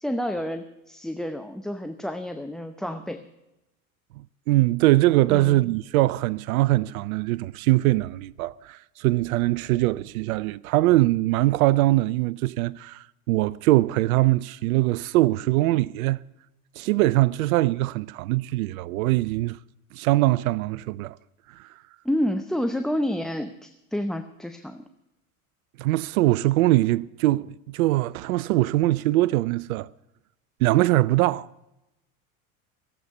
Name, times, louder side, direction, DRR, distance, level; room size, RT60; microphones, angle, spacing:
voice 1, 0.0-3.2 5.3-5.6 22.0-24.8, equal, ahead, 0.7 m, -29 dB
voice 2, 4.5-16.2 16.8-19.6 19.9-21.2 21.6-21.7 25.8-29.9 30.6-31.5, right 18 dB, 75° right, 0.5 m, -22 dB
17.0 x 8.1 x 8.1 m
hypercardioid pair, 85°, 43 cm